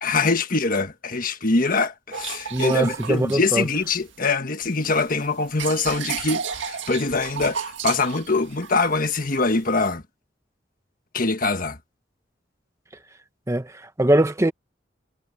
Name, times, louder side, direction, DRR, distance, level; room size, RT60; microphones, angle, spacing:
voice 1, 0.0-10.0 11.1-11.8, left 3 dB, 50° left, 1.6 m, -23 dB
sound 1, 2.1-4.2 4.6-9.9, right 7 dB, 85° right, 1.9 m, -33 dB
voice 2, 2.5-3.7 13.5-14.5, right 1 dB, 15° right, 0.8 m, -22 dB
head